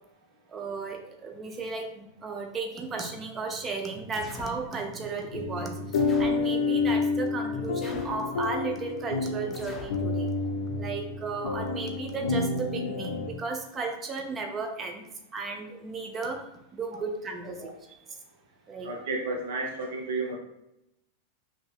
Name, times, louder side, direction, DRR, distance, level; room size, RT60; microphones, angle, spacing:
voice 1, 0.5-5.9 6.2-10.3 10.7-16.4 16.7-17.7 18.7-18.9, right 4 dB, 25° right, 3 dB, 0.7 m, -34 dB
sound 1, 4.1-4.6 5.9-6.5 7.8-8.3 9.5-10.0, left 4 dB, 20° left, 0.6 m, -44 dB
sound 2, 5.3-13.3, left 4 dB, 65° left, 0.6 m, -29 dB
voice 2, 17.4-17.7 18.8-20.4, right 3 dB, 55° right, 1 dB, 0.9 m, -33 dB
5.3 x 2.9 x 2.4 m, 0.84 s
figure-of-eight pair, 90°, 0 cm